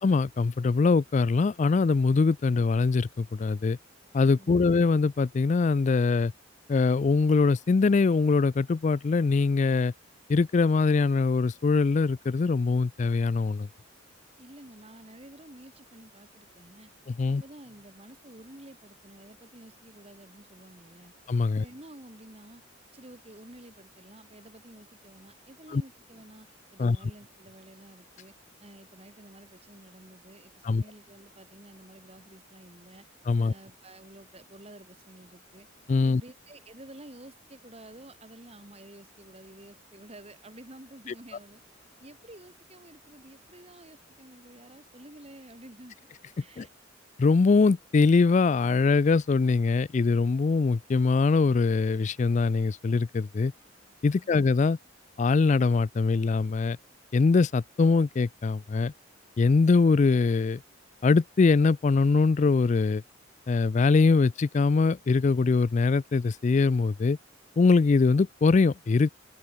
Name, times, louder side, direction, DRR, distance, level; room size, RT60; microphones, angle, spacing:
voice 1, 0.0-3.8 4.1-6.3 6.7-9.9 10.3-13.7 17.1-17.4 21.3-21.6 25.7-25.8 26.8-27.0 30.6-30.8 33.3-33.5 35.9-36.2 46.6-46.7 47.2-53.5 54.0-54.8 55.2-56.8 57.1-58.9 59.4-60.6 61.0-63.0 63.5-67.2 67.6-69.1, left 4 dB, 35° left, 0.3 m, -23 dB
voice 2, 4.3-4.7 14.4-16.9 17.3-21.1 21.6-22.6 22.9-28.3 28.6-33.0 33.4-35.7 36.0-41.6 42.0-46.0 46.4-46.7 54.1-54.4, right 1 dB, 30° right, 3.2 m, -50 dB
open air
head